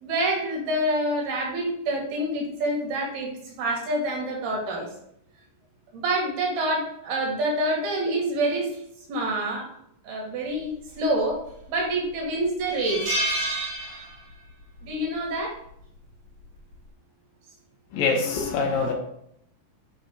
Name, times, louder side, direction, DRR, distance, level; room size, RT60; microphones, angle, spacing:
voice 1, 0.0-4.9 5.9-8.8 9.1-9.7 10.0-11.4 11.7-13.0 13.8-14.0 14.8-15.6, right 1 dB, 85° right, -2 dB, 3.9 m, -27 dB
sound 1, 11.3-11.8 12.2-12.3 12.7-14.5 14.8-15.0 16.2-16.5, right 1 dB, 70° right, 3.7 m, -29 dB
voice 2, 17.9-18.9, left 4 dB, 75° left, 2 dB, 2.7 m, -24 dB
11.0 x 4.4 x 2.4 m, 0.72 s
omnidirectional pair, 4.3 m